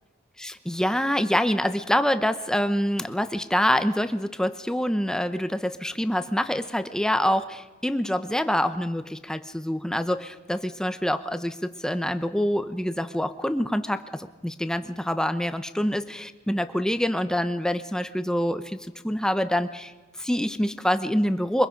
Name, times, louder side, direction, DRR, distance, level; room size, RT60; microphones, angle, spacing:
voice 1, 0.4-18.8 19.0-19.9 20.2-21.7, equal, 5° left, 10 dB, 0.8 m, -26 dB
23.5 x 22.0 x 5.1 m, 1.2 s
head